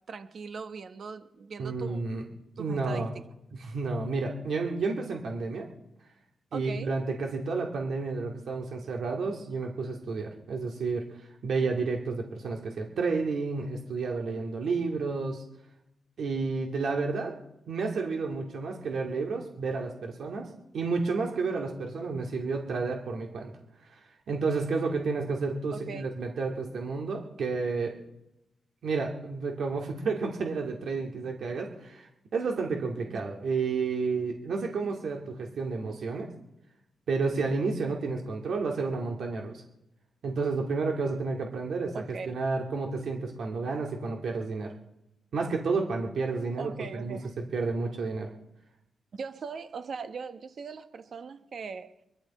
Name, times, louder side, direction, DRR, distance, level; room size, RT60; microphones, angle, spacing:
voice 1, 0.0-2.1 2.6-3.1 6.5-6.9 25.7-26.1 33.1-33.2 41.9-42.3 46.6-47.4 49.1-52.0, right 5 dB, 50° right, 1.0 m, -40 dB
voice 2, 1.6-2.2 2.6-3.1 3.5-5.7 6.5-11.1 11.4-15.4 16.2-17.3 17.7-20.5 20.7-23.5 24.3-28.0 28.8-36.3 37.1-39.6 40.2-44.7 45.3-47.2 47.5-48.3, right 4 dB, 70° right, 2.1 m, -31 dB
22.0 x 14.5 x 4.2 m
wide cardioid pair, 155°, 0 cm